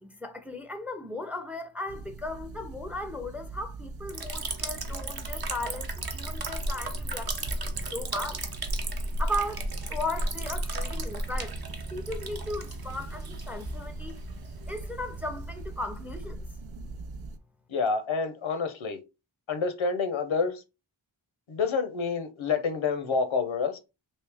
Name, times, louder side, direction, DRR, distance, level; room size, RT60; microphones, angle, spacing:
voice 1, 0.0-8.4 9.2-11.6 11.9-14.2 14.7-16.4, left 1 dB, 5° right, 0.5 m, -36 dB
sound 1, 1.9-17.4, right 2 dB, 85° right, 0.6 m, -42 dB
Liquid, 4.1-16.5, right 1 dB, 50° right, 0.8 m, -34 dB
voice 2, 17.7-19.0 19.5-20.6 21.5-23.8, left 5 dB, 80° left, 0.7 m, -28 dB
3.2 x 2.7 x 3.3 m
wide cardioid pair, 65°, 46 cm